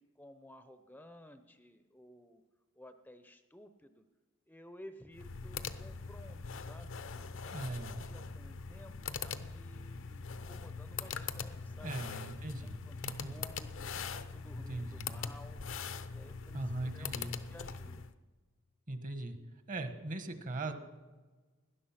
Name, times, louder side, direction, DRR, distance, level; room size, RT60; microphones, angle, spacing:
voice 1, 0.0-2.4 2.7-4.0 4.5-7.0 7.3-12.0 12.4-15.6 16.1-18.0, left 1 dB, 10° left, 9 dB, 0.6 m, -55 dB
sound 1, 5.1-18.1, left 5 dB, 65° left, 0.7 m, -42 dB
voice 2, 7.5-8.1 11.8-13.4 14.7-15.3 16.5-17.3 18.9-19.4 19.7-20.7, right 2 dB, 40° right, 9 dB, 1.2 m, -40 dB
18.5 x 11.0 x 5.8 m, 1.3 s
head